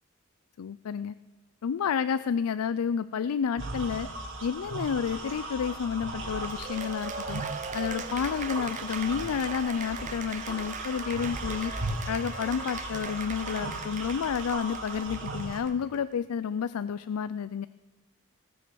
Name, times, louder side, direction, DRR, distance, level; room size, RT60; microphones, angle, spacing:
voice 1, 0.6-1.1 1.6-4.1 4.4-7.4 7.7-11.7 12.1-17.7, left 7 dB, 85° left, 15 dB, 0.4 m, -30 dB
sound 1, 3.6-15.6, right 2 dB, 60° right, 2.9 m, -37 dB
sound 2, 4.9-14.7, left 2 dB, 45° left, 2.2 m, -49 dB
Cheering / Applause, 6.4-16.0, right 6 dB, 35° right, 0.6 m, -41 dB
19.0 x 7.6 x 6.9 m, 1.2 s
head